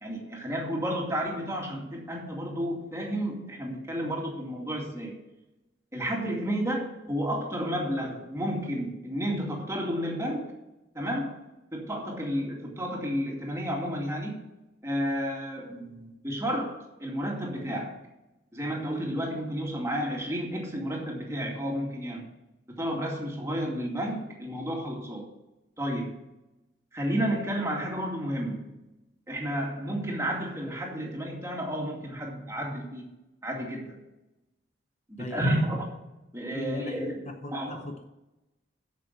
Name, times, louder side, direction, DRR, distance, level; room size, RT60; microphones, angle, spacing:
voice 1, 0.0-5.1 5.9-10.5 10.9-11.4 11.7-14.4 14.8-17.9 18.5-22.2 22.7-25.3 25.8-26.2 26.9-28.8 29.3-33.1 33.4-34.0 35.1-35.9 36.3-37.2 37.5-37.9, equal, 15° right, -1 dB, 2.4 m, -31 dB
voice 2, 35.2-35.6 36.5-38.0, left 2 dB, 40° left, 6 dB, 0.7 m, -39 dB
8.4 x 6.8 x 8.1 m, 0.97 s
head